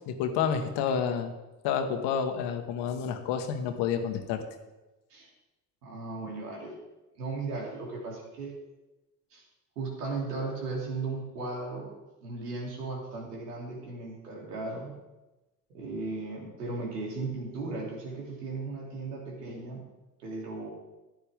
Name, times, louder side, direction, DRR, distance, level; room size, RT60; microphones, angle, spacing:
voice 1, 0.0-1.3 1.6-4.4, left 7 dB, 60° left, 7 dB, 1.5 m, -29 dB
voice 2, 5.8-6.7 7.2-8.5 9.3-9.4 9.7-11.9 12.2-14.9 15.7-19.8 20.2-20.7, right 3 dB, 75° right, -1 dB, 3.0 m, -36 dB
14.5 x 10.0 x 3.6 m, 1.1 s
figure-of-eight pair, 55°, 47 cm